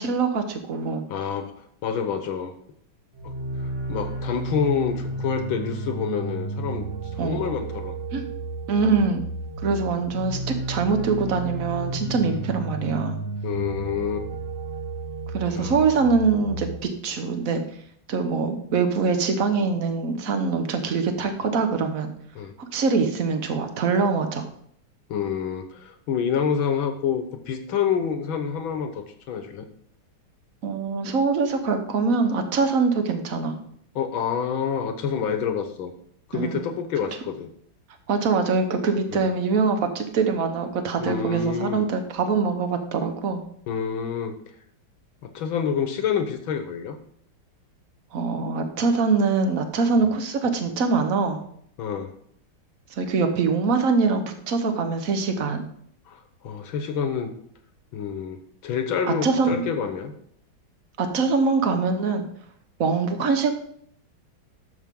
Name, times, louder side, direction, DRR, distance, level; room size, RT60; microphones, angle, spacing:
voice 1, 0.0-1.0 7.2-7.4 8.1-8.3 8.7-9.2 9.6-13.2 15.3-17.6 18.1-22.1 22.6-24.4 30.6-33.5 36.3-36.6 38.1-43.4 48.1-51.4 52.9-55.7 59.1-59.6 61.0-62.2 62.8-63.5, right 4 dB, 50° right, 6 dB, 1.4 m, -23 dB
voice 2, 1.1-1.5 1.8-2.5 3.2-3.3 3.9-8.0 12.2-12.4 13.4-14.3 15.5-15.8 22.4-22.5 25.1-29.7 34.0-35.9 36.3-37.5 39.1-39.3 41.0-41.8 43.7-44.4 45.2-47.0 50.0-50.1 51.8-52.1 56.1-57.3 57.9-60.1, left 7 dB, 80° left, 7 dB, 1.9 m, -28 dB
sound 1, 3.1-16.8, right 2 dB, 80° right, 4.3 m, -32 dB
11.5 x 7.3 x 3.8 m, 0.65 s
omnidirectional pair, 2.2 m